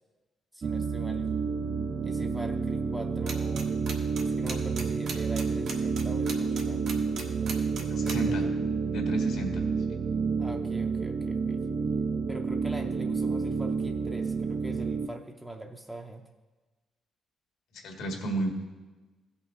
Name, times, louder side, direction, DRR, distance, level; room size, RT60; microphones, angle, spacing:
voice 1, 0.5-1.3 2.0-3.7 4.2-6.9 7.3-8.5 10.4-11.6 12.3-16.3, right 1 dB, 5° right, 2 dB, 0.6 m, -43 dB
sound 1, 0.6-15.1, right 5 dB, 45° right, 0.4 m, -29 dB
sound 2, 3.3-3.6 3.9-8.1, right 5 dB, 75° right, 1.4 m, -36 dB
voice 2, 7.9-8.4 8.9-9.6 17.7-18.5, right 1 dB, 80° left, 1 dB, 1.7 m, -32 dB
16.0 x 5.5 x 3.7 m, 1.2 s
cardioid pair, 90°, 0 cm